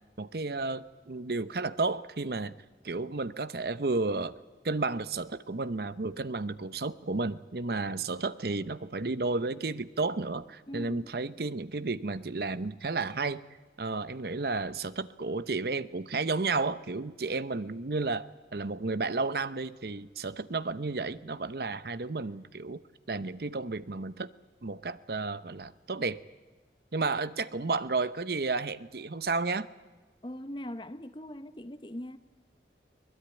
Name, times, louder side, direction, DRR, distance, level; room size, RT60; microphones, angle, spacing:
voice 1, 0.2-2.5 2.8-4.4 4.6-13.4 13.8-22.8 23.1-24.3 24.6-26.2 26.9-29.7, right 3 dB, 60° right, 0.8 m, -32 dB
voice 2, 10.7-11.1 30.2-32.2, equal, 25° left, 0.9 m, -41 dB
23.5 x 19.5 x 9.0 m
head